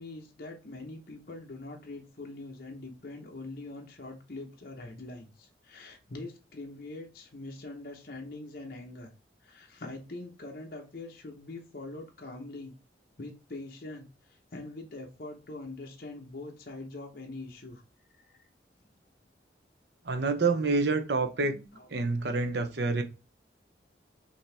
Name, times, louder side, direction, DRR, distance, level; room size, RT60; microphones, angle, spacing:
voice 1, 0.0-9.1 9.4-12.7 13.2-14.1 14.5-17.8 18.2-18.4 21.2-21.9, left 2 dB, 50° left, 0.9 m, -43 dB
voice 2, 20.0-21.6 21.9-23.0, right 3 dB, 65° right, 0.7 m, -27 dB
5.3 x 2.8 x 3.3 m
head